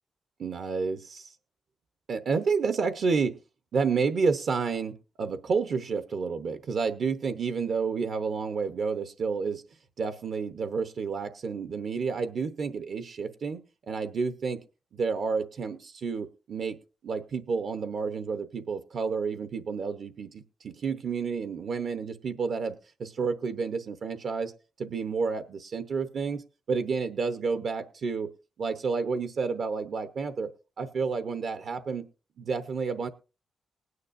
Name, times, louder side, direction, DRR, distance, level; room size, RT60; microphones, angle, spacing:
voice 1, 0.4-1.3 2.1-3.4 3.7-9.6 10.0-14.6 14.9-16.8 17.0-22.7 23.0-24.5 24.8-26.4 26.7-28.3 28.6-30.5 30.8-32.0 32.4-33.1, right 5 dB, 45° right, 9 dB, 0.8 m, -30 dB
20.0 x 9.5 x 2.5 m, 0.33 s
wide cardioid pair, 180°, 0 cm